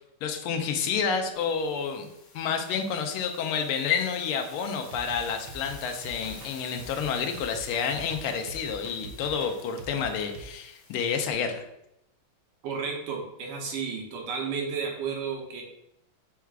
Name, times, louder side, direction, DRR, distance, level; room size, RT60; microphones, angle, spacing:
voice 1, 0.2-2.1 2.3-11.6, left 6 dB, 80° left, 6 dB, 1.5 m, -29 dB
sound 1, 1.3-11.3, left 4 dB, 60° left, 1.3 m, -51 dB
sound 2, 4.8-10.5, right 4 dB, 70° right, 1.2 m, -45 dB
voice 2, 12.6-15.6, right 5 dB, 90° right, 0 dB, 1.9 m, -32 dB
4.6 x 2.4 x 4.6 m, 0.82 s
omnidirectional pair, 2.4 m